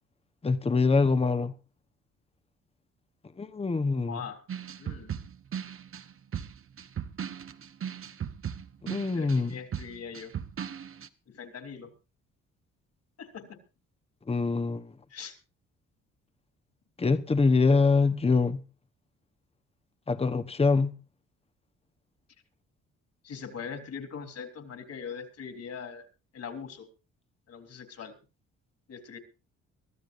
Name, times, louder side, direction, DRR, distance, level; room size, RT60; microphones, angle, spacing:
voice 1, 0.4-1.5 3.4-4.2 8.8-9.5 14.3-14.9 17.0-18.6 20.1-20.9, left 4 dB, 20° left, 1.1 m, -24 dB
voice 2, 4.1-4.4 4.8-5.1 9.1-10.3 11.3-11.9 13.2-13.6 15.1-15.4 23.2-26.1 26.3-26.9 27.5-28.1 28.9-29.2, left 6 dB, 55° left, 3.6 m, -41 dB
sound 1, 4.5-11.1, right 8 dB, 45° right, 1.1 m, -37 dB
23.5 x 14.0 x 2.6 m
cardioid pair, 90°, 30 cm